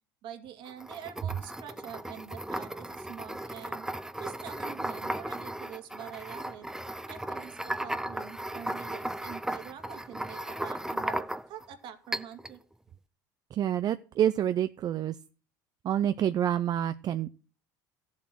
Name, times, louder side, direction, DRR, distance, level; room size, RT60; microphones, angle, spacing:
voice 1, 0.2-3.9 4.1-6.7 7.1-12.6, right 9 dB, 60° right, 5 dB, 2.5 m, -45 dB
sound 1, 0.6-11.6 12.1-12.6, right 1 dB, 5° right, 0.8 m, -36 dB
voice 2, 13.5-15.1 15.8-17.3, right 10 dB, 45° right, 12 dB, 0.6 m, -27 dB
14.0 x 7.4 x 6.1 m, 0.37 s
supercardioid pair, 95°, 10 cm